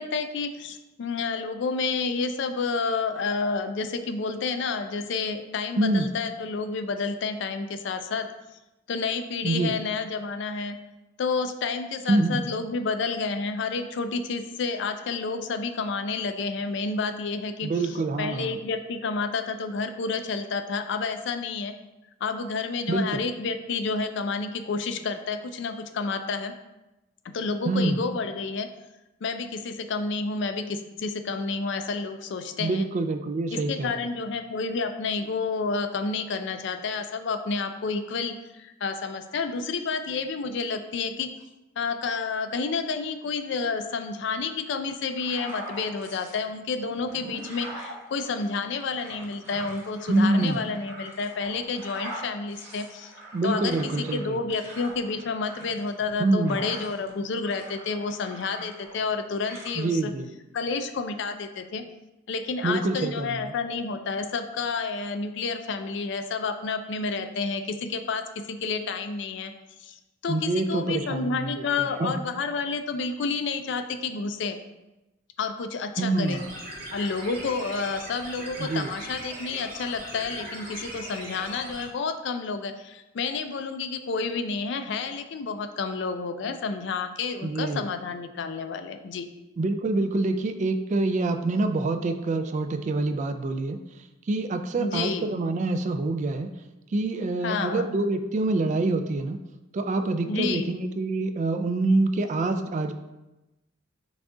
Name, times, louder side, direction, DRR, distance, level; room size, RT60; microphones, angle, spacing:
voice 1, 0.0-8.3 8.9-10.8 11.2-21.7 22.2-26.6 27.2-28.7 29.2-32.9 33.5-41.3 41.8-53.1 53.4-60.1 60.5-61.8 62.3-69.5 69.8-70.0 70.2-74.6 75.4-76.4 76.9-89.3 94.8-95.3 97.4-97.9 100.3-100.7, left 4 dB, 65° left, 8 dB, 0.4 m, -30 dB
voice 2, 5.8-6.1 9.4-9.8 12.1-12.4 17.6-18.6 22.9-23.2 27.7-28.0 32.6-34.1 50.1-50.6 53.3-54.4 56.2-56.6 59.8-60.3 62.6-63.5 70.3-72.2 76.0-76.4 78.6-78.9 87.4-87.8 89.6-93.8 94.3-96.5 96.9-99.4 99.7-102.9, right 2 dB, 40° right, 8 dB, 0.3 m, -26 dB
sound 1, 45.1-46.4 46.9-57.1 57.4-59.2 59.5-59.7, right 1 dB, 10° right, 0.8 m, -43 dB
sound 2, 76.2-81.8, right 1 dB, 55° right, 1.5 m, -39 dB
6.0 x 2.4 x 3.7 m, 1.0 s
head